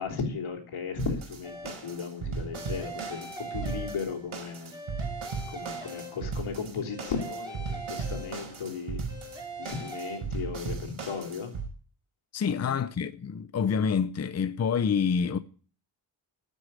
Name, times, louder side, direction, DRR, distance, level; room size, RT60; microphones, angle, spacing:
voice 1, 0.0-1.5 1.8-4.7 5.5-9.0 9.6-11.5 12.5-12.8, left 5 dB, 85° left, 3.4 m, -35 dB
sound 1, 1.0-11.7, right 5 dB, 90° right, 4.9 m, -37 dB
sound 2, 1.4-2.0 2.5-4.4 4.7-6.5 6.9-8.7 9.1-10.2, right 2 dB, 10° right, 5.7 m, -41 dB
voice 2, 12.3-15.4, left 6 dB, 35° left, 0.6 m, -27 dB
10.0 x 8.3 x 9.9 m
wide cardioid pair, 135°, 48 cm